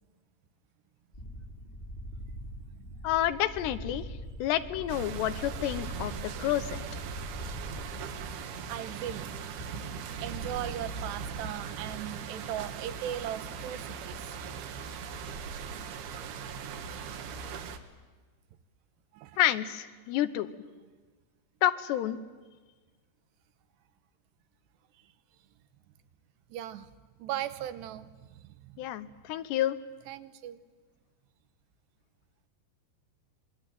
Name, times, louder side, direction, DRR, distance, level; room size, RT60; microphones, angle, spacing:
sound 1, 1.1-8.4, equal, 20° left, 1.6 m, -43 dB
voice 1, 2.3-3.0 8.7-9.3 10.2-14.4 16.6-16.7 19.1-19.4 24.9-25.0 26.5-26.9 27.2-28.9 30.1-30.6, right 11 dB, 90° right, 12 dB, 3.2 m, -39 dB
voice 2, 3.0-4.1 4.4-6.1 6.4-6.8 19.4-20.5 21.6-22.2 28.8-29.8, left 12 dB, 85° left, 12 dB, 3.2 m, -29 dB
sound 2, 4.9-17.8, right 6 dB, 75° right, 3.3 m, -39 dB
26.0 x 23.0 x 9.2 m, 1.4 s
omnidirectional pair, 4.8 m